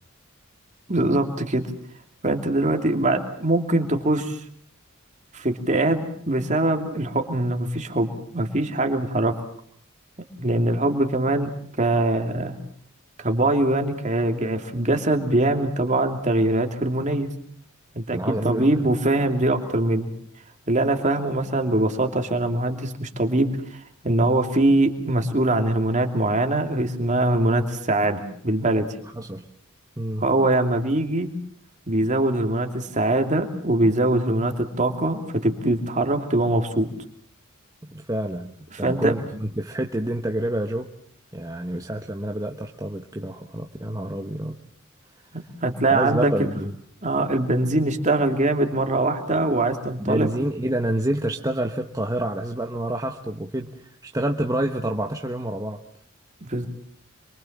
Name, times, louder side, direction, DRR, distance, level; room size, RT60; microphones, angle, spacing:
voice 1, 0.9-1.6 2.2-4.4 5.3-9.3 10.4-11.5 11.8-12.6 13.2-17.3 17.9-18.2 18.4-20.1 20.7-23.8 24.0-28.9 30.2-31.3 31.9-36.9 38.7-39.1 45.3-46.5 47.0-50.3 56.4-56.7, right 2 dB, 35° right, 5 dB, 2.8 m, -22 dB
voice 2, 18.1-18.9 29.1-29.4 30.0-30.2 37.9-38.5 38.8-40.9 41.3-44.6 45.9-46.7 50.0-55.8, right 1 dB, 15° right, 3 dB, 1.2 m, -28 dB
27.5 x 23.5 x 7.4 m, 0.64 s
head